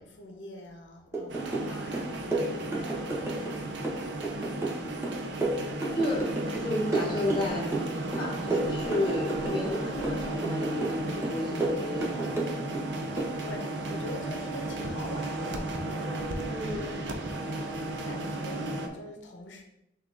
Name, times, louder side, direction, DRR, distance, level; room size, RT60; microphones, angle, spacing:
voice 1, 0.0-3.8 13.4-16.6 18.0-19.6, left 1 dB, 85° left, 2 dB, 0.7 m, -44 dB
sound 1, 1.1-1.7 1.9-3.6 3.8-6.6 6.9-9.7 10.0-11.0 11.2-12.8 13.2-13.3, right 2 dB, 15° right, 0.8 m, -31 dB
sound 2, 1.3-18.9, right 2 dB, 80° right, 0.6 m, -34 dB
voice 2, 5.9-6.3 6.6-7.7 8.2-12.4 16.5-17.0, left 1 dB, 25° left, -3 dB, 1.0 m, -32 dB
6.2 x 2.5 x 3.4 m, 0.85 s
head